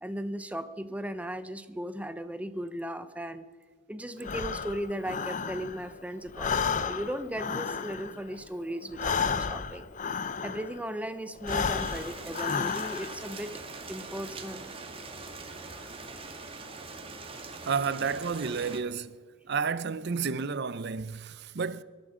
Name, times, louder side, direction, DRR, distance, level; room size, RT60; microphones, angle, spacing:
voice 1, 0.0-3.5 3.9-9.9 10.4-13.6 13.9-14.7, equal, 5° right, 0.8 m, -37 dB
Breathing, 4.2-6.0 6.3-10.9 11.4-13.3, left 6 dB, 40° left, 0.6 m, -32 dB
Rain, 11.5-18.8, right 3 dB, 25° right, 2.0 m, -42 dB
voice 2, 17.6-19.2 19.5-21.8, right 5 dB, 55° right, 0.6 m, -31 dB
23.0 x 12.5 x 5.0 m
head